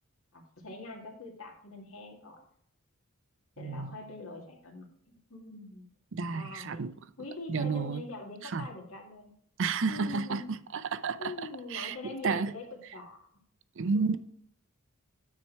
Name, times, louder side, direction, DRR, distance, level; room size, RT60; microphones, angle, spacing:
voice 1, 0.3-2.4 3.6-5.9 6.3-6.8 7.2-9.3 9.8-10.5 11.2-13.3 13.9-14.2, left 2 dB, 65° left, 2.1 m, -44 dB
voice 2, 3.6-3.9 6.1-6.9 7.5-8.0 8.4-8.7 9.6-11.3 11.7-12.5 13.8-14.2, right 4 dB, 60° right, 0.5 m, -31 dB
9.3 x 4.4 x 4.5 m
head